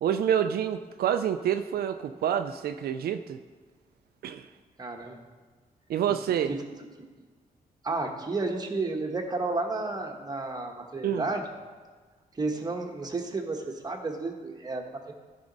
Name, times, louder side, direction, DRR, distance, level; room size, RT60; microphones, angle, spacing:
voice 1, 0.0-3.4 4.2-4.5 5.9-6.5 11.0-11.3, right 9 dB, 80° right, 8 dB, 0.4 m, -27 dB
voice 2, 4.8-5.2 6.5-6.6 7.8-11.5 12.3-15.1, right 3 dB, 25° right, 3 dB, 1.1 m, -32 dB
14.0 x 5.1 x 4.0 m, 1.4 s
cardioid pair, 120°, 16 cm